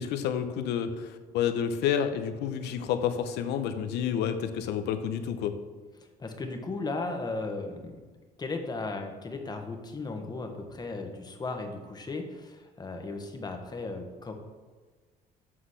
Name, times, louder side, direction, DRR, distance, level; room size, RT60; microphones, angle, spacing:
voice 1, 0.0-5.6, left 8 dB, 85° left, 9 dB, 0.7 m, -29 dB
voice 2, 6.2-8.0 8.4-14.3, left 3 dB, 25° left, 4 dB, 1.2 m, -36 dB
7.7 x 4.0 x 6.4 m, 1.4 s
cardioid pair, 110°, 17 cm